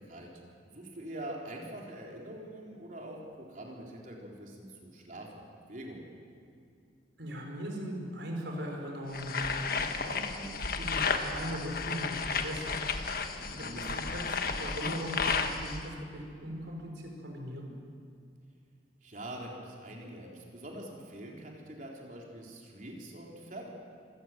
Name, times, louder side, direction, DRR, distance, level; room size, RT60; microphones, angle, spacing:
voice 1, 0.7-6.0 13.5-14.0 19.0-23.7, right 1 dB, 45° right, -1 dB, 3.8 m, -44 dB
voice 2, 7.2-9.4 9.7-12.7 13.4-17.7, equal, 85° right, 1 dB, 4.9 m, -39 dB
sound 1, 9.1-15.9, left 5 dB, 55° left, 1.3 m, -33 dB
25.5 x 17.0 x 7.5 m, 2.4 s
head